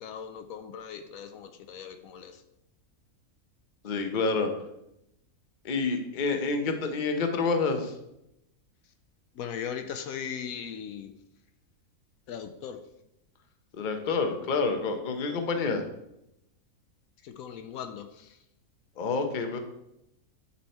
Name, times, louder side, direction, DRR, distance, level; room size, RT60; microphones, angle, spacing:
voice 1, 0.0-2.3 9.4-11.1 12.3-12.8 17.4-18.0, left 7 dB, 75° left, 7 dB, 1.0 m, -38 dB
voice 2, 3.8-4.5 5.6-7.9 13.7-15.8 19.0-19.6, left 4 dB, 40° left, 5 dB, 0.8 m, -28 dB
8.8 x 4.2 x 4.3 m, 0.84 s
omnidirectional pair, 1.5 m